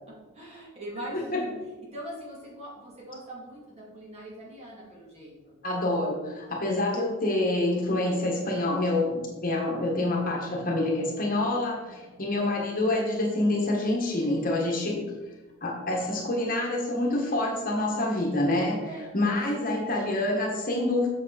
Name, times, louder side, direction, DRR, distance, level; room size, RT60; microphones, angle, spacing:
voice 1, 0.3-1.5 1.9-5.5 11.8-11.9 12.3-12.4 18.8-19.1, right 1 dB, 30° right, -4 dB, 2.5 m, -41 dB
voice 2, 5.6-15.1 15.6-18.8 19.1-21.1, left 2 dB, 40° left, 0 dB, 1.4 m, -27 dB
7.5 x 6.7 x 4.1 m, 1.2 s
head